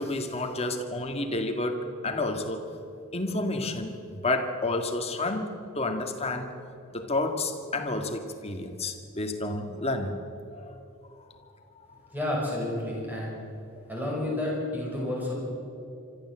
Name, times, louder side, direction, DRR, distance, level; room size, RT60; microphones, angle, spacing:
voice 1, 0.0-2.6 3.1-6.5 6.9-10.2 10.5-10.8, left 2 dB, 30° left, 5 dB, 1.9 m, -30 dB
voice 2, 12.1-13.4 13.9-15.3, left 1 dB, 10° right, -3 dB, 6.2 m, -30 dB
25.0 x 13.5 x 7.7 m, 2.7 s
head